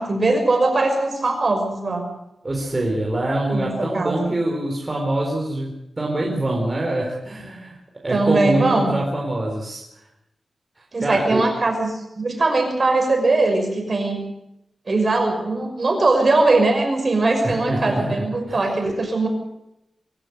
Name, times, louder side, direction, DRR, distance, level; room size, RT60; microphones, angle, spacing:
voice 1, 0.0-2.1 3.5-3.7 3.9-4.3 8.1-8.9 10.9-14.2 14.9-19.3, right 2 dB, 40° right, 3 dB, 5.9 m, -20 dB
voice 2, 2.4-7.8 8.0-9.8 11.0-11.4 17.4-18.7, right 1 dB, 25° right, -2 dB, 4.3 m, -24 dB
25.0 x 13.5 x 8.1 m, 0.85 s
wide cardioid pair, 140°, 0 cm